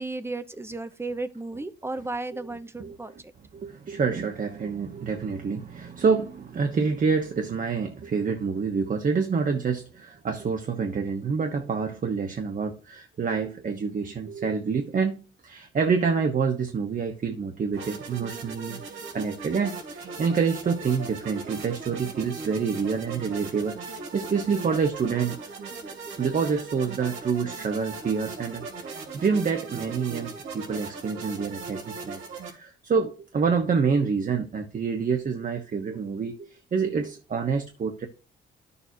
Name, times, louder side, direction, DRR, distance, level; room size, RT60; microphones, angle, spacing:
voice 1, 0.0-3.1, right 2 dB, 10° right, 1.1 m, -34 dB
voice 2, 3.5-25.4 26.1-32.2 32.5-38.1, right 5 dB, 40° right, 1.3 m, -27 dB
sound 1, 17.7-32.5, right 4 dB, 80° right, 2.9 m, -39 dB
12.0 x 7.0 x 2.8 m
cardioid pair, 90°, 20 cm